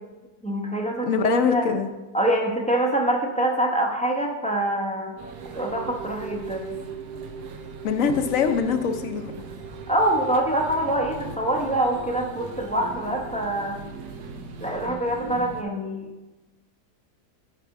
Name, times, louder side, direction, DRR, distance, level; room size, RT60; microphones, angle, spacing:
voice 1, 0.4-1.6 2.1-5.1 5.5-6.8 9.9-13.8 14.6-16.1, right 1 dB, 5° left, 0 dB, 0.6 m, -25 dB
voice 2, 1.1-1.9 7.8-9.3, left 6 dB, 60° left, 7 dB, 1.0 m, -23 dB
sound 1, 5.2-15.6, right 5 dB, 85° right, 1.4 m, -38 dB
11.5 x 5.0 x 4.7 m, 1.1 s
omnidirectional pair, 1.7 m